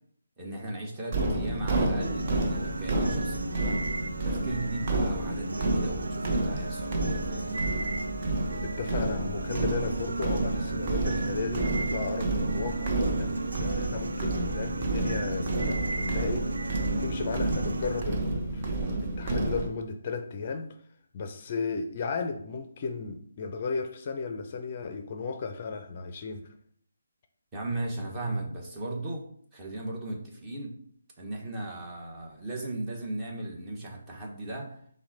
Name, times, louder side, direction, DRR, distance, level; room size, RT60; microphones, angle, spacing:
voice 1, 0.4-3.8 4.2-7.7 27.5-30.8 31.2-34.8, right 2 dB, 20° right, -2 dB, 1.1 m, -37 dB
sound 1, 1.1-19.7, right 2 dB, 35° right, 0.8 m, -30 dB
sound 2, 2.0-18.0, right 2 dB, 75° right, 0.4 m, -36 dB
voice 2, 8.6-20.7 21.1-26.5, left 5 dB, 40° left, 6 dB, 0.5 m, -35 dB
5.8 x 2.2 x 4.1 m, 0.62 s
figure-of-eight pair, 155°, 0 cm